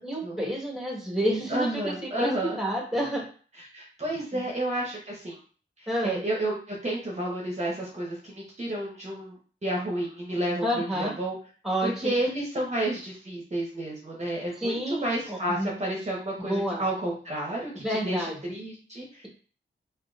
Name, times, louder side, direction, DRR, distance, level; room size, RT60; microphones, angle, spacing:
voice 1, 0.0-2.3 2.6-3.2 4.3-4.4 5.9-6.2 10.6-11.1 11.6-12.2 14.6-15.7 16.4-16.8 17.8-18.4, equal, ahead, -3 dB, 1.3 m, -29 dB
voice 2, 1.5-2.6 3.5-5.4 5.8-9.3 9.6-11.4 11.8-19.3, right 1 dB, 35° right, -4 dB, 1.0 m, -31 dB
3.9 x 2.6 x 2.4 m, 0.41 s
wide cardioid pair, 60°, 21 cm